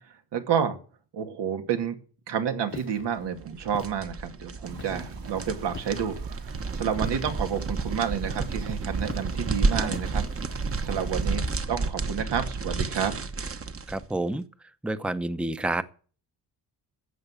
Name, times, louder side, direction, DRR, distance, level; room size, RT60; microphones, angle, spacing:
voice 1, 0.3-0.8 1.1-1.9 2.3-6.2 6.4-10.2 10.8-13.1, right 7 dB, 80° right, 2.4 m, -29 dB
Walk footsteps, 2.7-3.1 3.7-4.0 4.8-5.1 5.7-6.1 7.0-7.3 8.2-8.7 9.1-9.4 9.9-10.5 11.4-11.9, left 5 dB, 30° left, 0.9 m, -42 dB
sound 1, 3.4-14.0, right 4 dB, 35° right, 1.2 m, -31 dB
sound 2, 4.6-11.4, right 4 dB, 60° right, 2.8 m, -48 dB
voice 2, 13.9-14.4 14.8-15.8, right 2 dB, 5° right, 0.8 m, -28 dB
12.5 x 7.9 x 8.4 m
cardioid pair, 115°, 41 cm